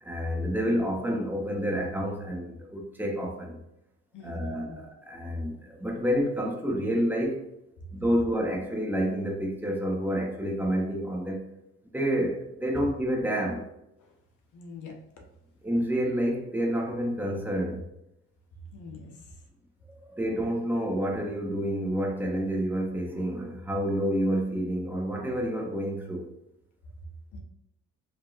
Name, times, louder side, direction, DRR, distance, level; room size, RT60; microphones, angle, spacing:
voice 1, 0.0-3.6 4.2-7.4 7.9-11.4 11.9-13.6 15.6-17.8 20.1-26.3, equal, 5° right, 0 dB, 0.9 m, -29 dB
voice 2, 4.1-4.8 14.0-14.1 14.5-15.0 18.7-19.2 27.3-27.4, left 4 dB, 75° left, 1 dB, 1.0 m, -44 dB
5.0 x 2.7 x 2.4 m, 0.84 s
cardioid pair, 90°, 30 cm